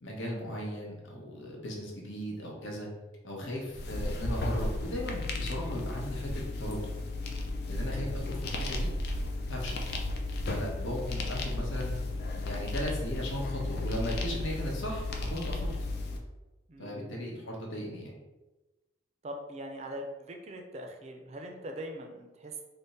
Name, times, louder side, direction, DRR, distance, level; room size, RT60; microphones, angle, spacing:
voice 1, 0.0-2.9 3.2-6.9 7.7-8.9 9.5-9.8 10.5-11.9 12.4-15.7 16.8-18.1, equal, 85° left, -2 dB, 0.9 m, -37 dB
sound 1, 3.7-16.2, left 2 dB, 55° left, 0.4 m, -34 dB
voice 2, 16.7-17.3 19.2-22.6, right 1 dB, 35° right, 3 dB, 0.4 m, -42 dB
3.4 x 2.1 x 4.0 m, 1.1 s
head